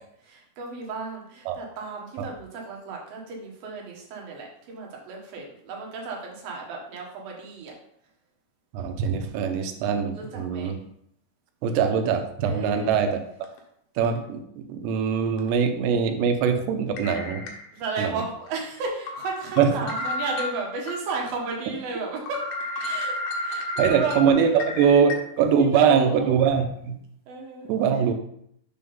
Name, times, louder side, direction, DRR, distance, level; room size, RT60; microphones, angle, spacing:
voice 1, 0.2-7.7 10.1-10.7 12.4-13.1 17.7-22.4 22.8-24.5 25.6-26.4 27.3-27.7, right 4 dB, 65° right, -1 dB, 2.8 m, -34 dB
voice 2, 8.7-10.8 11.6-13.2 14.0-17.5 18.0-18.2 19.6-19.7 23.8-27.0 27.7-28.1, right 7 dB, 85° right, 6 dB, 2.9 m, -22 dB
sound 1, 13.4-13.6 14.1-14.2 15.4-15.5 17.0-18.0 18.5-18.6 19.1-21.0 21.4-21.5 21.9-22.0 22.3-25.2, left 1 dB, 70° left, 2.6 m, -32 dB
6.7 x 3.6 x 5.5 m, 0.71 s
omnidirectional pair, 5.0 m